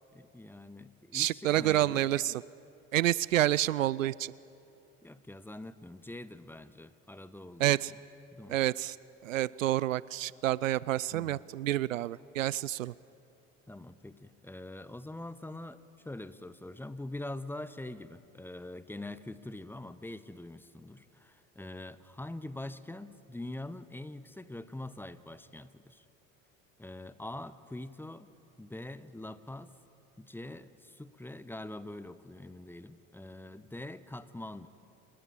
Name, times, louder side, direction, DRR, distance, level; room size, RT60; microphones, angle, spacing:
voice 1, 0.1-2.1 5.0-7.7 8.3-8.6 11.1-11.4 13.7-15.8 16.0-26.0 26.8-29.7 30.2-34.7, left 1 dB, 5° left, 15 dB, 1.0 m, -44 dB
voice 2, 1.1-2.4 2.9-4.3 7.6-7.9 8.5-9.0 9.2-12.9, right 14 dB, 75° right, 22 dB, 0.5 m, -28 dB
26.5 x 20.0 x 8.6 m, 2.6 s
figure-of-eight pair, 65°, 40 cm